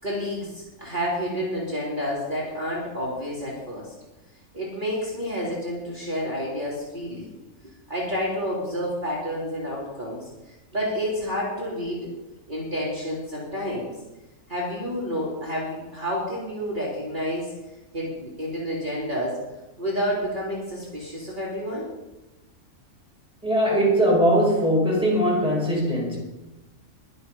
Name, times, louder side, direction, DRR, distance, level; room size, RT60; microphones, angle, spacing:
voice 1, 0.0-3.9 4.5-7.3 7.9-12.1 12.5-13.9 14.5-17.5 17.9-19.4 19.8-21.9, equal, 35° right, -6 dB, 3.8 m, -29 dB
voice 2, 23.4-26.2, equal, 5° right, -3 dB, 5.6 m, -20 dB
22.5 x 8.0 x 5.7 m, 1.0 s
omnidirectional pair, 1.5 m